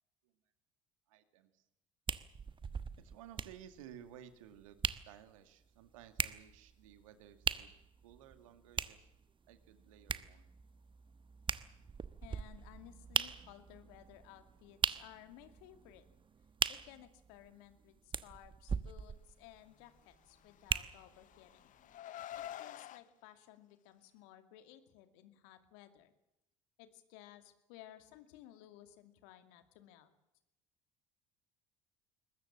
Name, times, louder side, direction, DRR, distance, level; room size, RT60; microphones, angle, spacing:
voice 1, 1.1-1.7 3.0-7.8 8.0-9.1 9.5-10.5, right 10 dB, 80° right, 9 dB, 2.2 m, -56 dB
sound 1, 2.1-21.3 21.9-22.0, right 6 dB, 30° right, 1.2 m, -41 dB
voice 2, 12.2-16.0 16.7-21.7 22.4-26.1 26.8-30.1, left 13 dB, 70° left, 9 dB, 2.5 m, -57 dB
Car, 20.5-23.0, left 12 dB, 50° left, 0.9 m, -48 dB
22.0 x 20.5 x 7.4 m, 0.88 s
hypercardioid pair, 65°, 17 cm